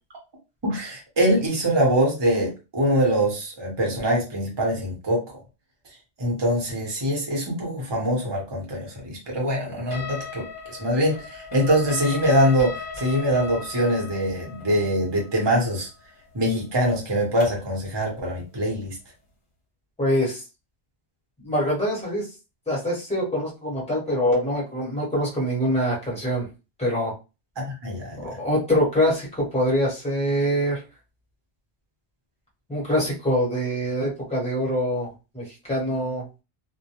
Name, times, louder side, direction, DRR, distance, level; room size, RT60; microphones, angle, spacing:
voice 1, 0.6-5.2 6.2-15.9 16.3-19.0 27.6-28.4, equal, 25° right, -2 dB, 0.8 m, -23 dB
sound 1, 9.9-17.7, left 5 dB, 55° left, 0.8 m, -38 dB
voice 2, 20.0-20.4 21.4-22.3 22.7-26.5 26.8-27.1 28.2-30.8 32.7-36.2, equal, 5° left, -4 dB, 1.0 m, -24 dB
2.2 x 2.1 x 2.8 m, 0.29 s
omnidirectional pair, 1.1 m